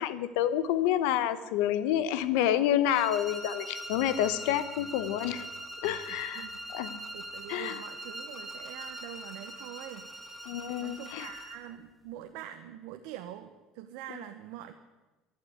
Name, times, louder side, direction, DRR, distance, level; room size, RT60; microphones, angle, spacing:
voice 1, 0.0-5.4 5.8-6.5 6.7-7.0 7.5-7.8 10.5-11.3, left 11 dB, 75° left, 14 dB, 1.0 m, -28 dB
sound 1, 2.9-11.7, right 1 dB, 5° right, 1.0 m, -42 dB
voice 2, 7.1-10.1 10.8-14.7, right 12 dB, 70° right, 6 dB, 1.0 m, -44 dB
11.5 x 11.5 x 9.6 m, 1.1 s
cardioid pair, 180°, 0 cm